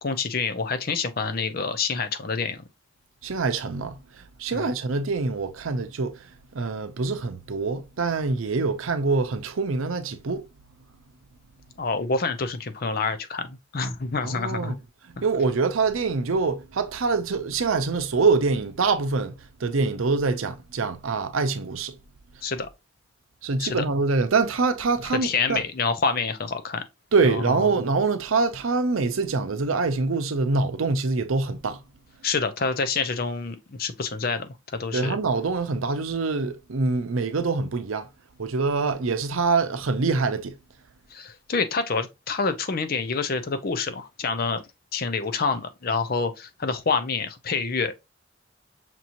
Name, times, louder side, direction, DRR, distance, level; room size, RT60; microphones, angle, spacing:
voice 1, 0.0-2.6 4.5-4.7 11.8-14.7 22.4-22.7 23.6-23.8 25.0-26.8 27.2-27.7 32.2-35.2 41.1-44.6 44.9-48.0, left 4 dB, 45° left, 0.5 m, -27 dB
voice 2, 3.2-6.2 6.5-10.4 14.2-14.7 15.2-19.3 19.6-21.9 23.4-25.6 27.1-31.8 34.9-38.1 38.4-40.5, right 4 dB, 85° right, 0.6 m, -25 dB
5.9 x 2.9 x 2.5 m
head